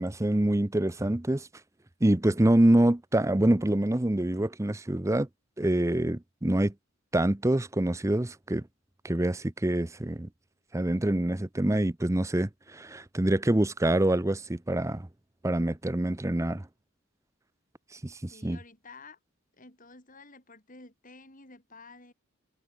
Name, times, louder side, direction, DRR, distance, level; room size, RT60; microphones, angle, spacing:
voice 1, 0.0-1.5 2.0-5.3 5.6-6.7 7.1-8.7 9.0-10.3 10.7-15.1 15.4-16.7 18.0-18.6, right 1 dB, 15° right, 0.6 m, -26 dB
voice 2, 18.3-19.2 19.5-22.1, left 3 dB, 40° left, 7.5 m, -51 dB
head